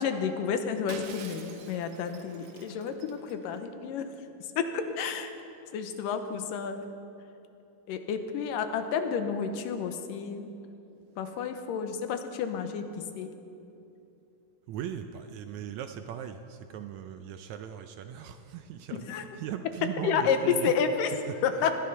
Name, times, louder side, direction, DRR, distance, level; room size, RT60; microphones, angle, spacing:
voice 1, 0.0-4.1 4.6-5.3 5.7-6.8 7.9-10.5 11.2-13.3 18.9-19.2 20.0-21.1 21.4-21.7, left 6 dB, 85° left, 8 dB, 2.5 m, -30 dB
Shatter, 0.9-3.6, right 6 dB, 60° right, 1.8 m, -46 dB
voice 2, 14.7-20.8 21.1-21.7, right 9 dB, 80° right, 8 dB, 1.6 m, -39 dB
19.5 x 12.5 x 5.6 m, 2.8 s
omnidirectional pair, 3.9 m